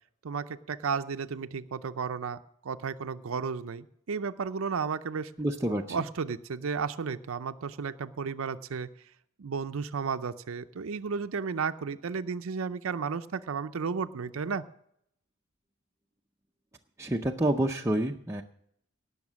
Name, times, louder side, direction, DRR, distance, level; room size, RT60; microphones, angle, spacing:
voice 1, 0.2-5.3 5.9-8.9 9.4-14.7, right 5 dB, 70° right, 11 dB, 0.5 m, -33 dB
voice 2, 5.4-6.1 17.0-18.4, right 1 dB, 15° right, 1 dB, 0.5 m, -28 dB
18.0 x 6.5 x 6.2 m, 0.72 s
head